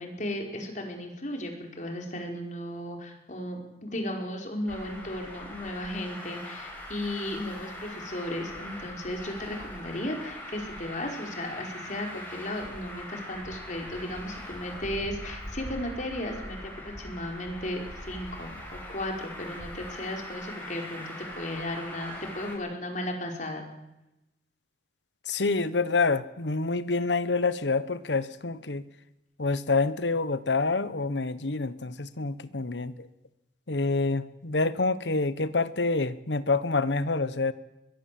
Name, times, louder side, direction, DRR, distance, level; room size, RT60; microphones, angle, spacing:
voice 1, 0.0-23.7, left 1 dB, 45° left, 2 dB, 4.8 m, -35 dB
Traffic noise roadway noise, 4.7-22.5, left 1 dB, 10° left, 6.9 m, -41 dB
voice 2, 25.3-28.8 29.4-33.1 33.7-37.5, left 3 dB, 85° left, 15 dB, 1.2 m, -27 dB
23.0 x 22.0 x 7.7 m, 0.94 s
head